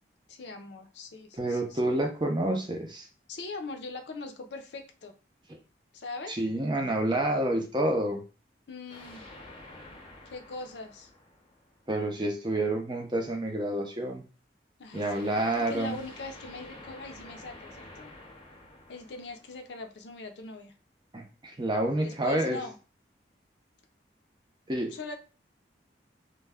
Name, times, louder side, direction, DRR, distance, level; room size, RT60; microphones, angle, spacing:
voice 1, 0.3-1.8 3.3-5.1 5.9-6.4 8.7-9.3 10.3-11.1 14.8-18.1 18.9-20.7 22.0-22.8 24.9-25.2, left 3 dB, 75° left, 5 dB, 0.5 m, -41 dB
voice 2, 1.3-3.1 6.3-8.2 11.9-14.3 14.9-15.9 21.1-22.6 24.7-24.9, right 1 dB, 25° right, 3 dB, 0.5 m, -28 dB
sound 1, 8.9-12.0 14.9-20.1, left 2 dB, 30° left, 0.7 m, -49 dB
2.3 x 2.1 x 3.3 m, 0.35 s
head